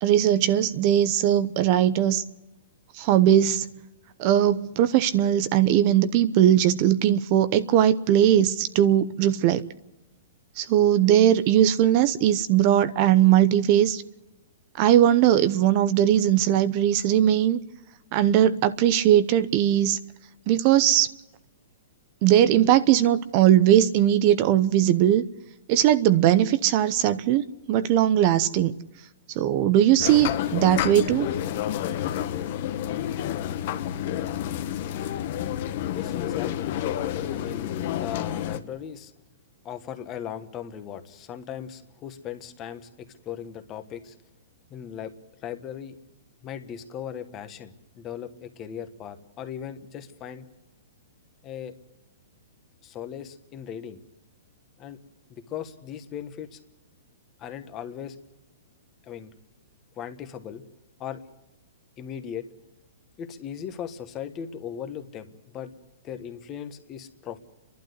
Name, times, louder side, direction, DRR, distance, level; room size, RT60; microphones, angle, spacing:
voice 1, 0.0-2.2 2.9-3.7 4.2-9.6 10.6-14.0 14.8-17.6 18.1-20.0 20.5-21.1 22.2-25.2 25.7-28.7 29.4-31.3, right 11 dB, 40° right, 0.7 m, -20 dB
sound 1, 30.0-38.6, left 11 dB, 45° left, 1.2 m, -29 dB
voice 2, 35.9-36.8 37.3-39.1 39.6-44.1 44.7-45.1 45.4-45.9 46.4-50.5 51.4-51.7 52.8-54.0 54.8-55.0 55.3-56.6 57.4-58.2 59.0-59.3 60.0-60.6 61.0-61.2 62.0-62.5 63.2-65.8 66.0-67.4, left 9 dB, 25° left, 1.4 m, -38 dB
29.5 x 12.0 x 8.1 m
hypercardioid pair, 150°, 0 cm